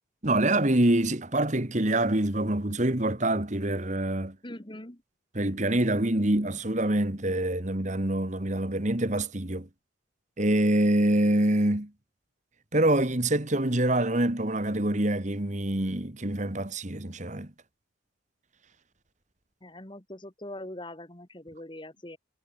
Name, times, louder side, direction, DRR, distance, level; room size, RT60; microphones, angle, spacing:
voice 1, 0.2-4.4 5.4-9.7 10.4-11.9 12.7-17.5, right 1 dB, 35° right, 1.8 m, -25 dB
voice 2, 4.4-5.0 19.6-22.2, left 1 dB, 25° left, 2.0 m, -42 dB
head